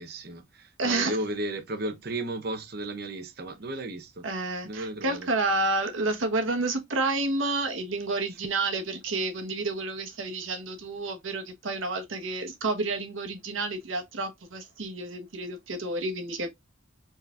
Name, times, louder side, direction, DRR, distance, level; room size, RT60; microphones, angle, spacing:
voice 1, 0.0-4.2 4.6-5.3, right 1 dB, 50° right, 0.8 m, -34 dB
voice 2, 0.8-1.2 4.2-16.5, right 2 dB, 80° right, 1.2 m, -30 dB
4.6 x 4.1 x 2.4 m
head